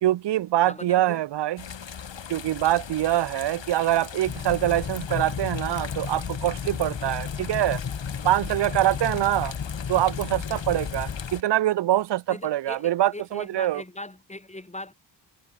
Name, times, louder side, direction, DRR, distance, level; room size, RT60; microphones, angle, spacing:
voice 1, 0.0-1.6 2.3-7.8 8.2-9.5 9.9-13.8, right 13 dB, 60° right, 0.6 m, -24 dB
voice 2, 0.6-1.2 8.8-9.0 12.3-14.9, left 2 dB, 15° left, 3.4 m, -40 dB
sound 1, 1.6-11.4, left 7 dB, 65° left, 3.7 m, -39 dB
Fire, 4.2-11.3, left 7 dB, 40° left, 1.0 m, -34 dB
cardioid pair, 60°, 47 cm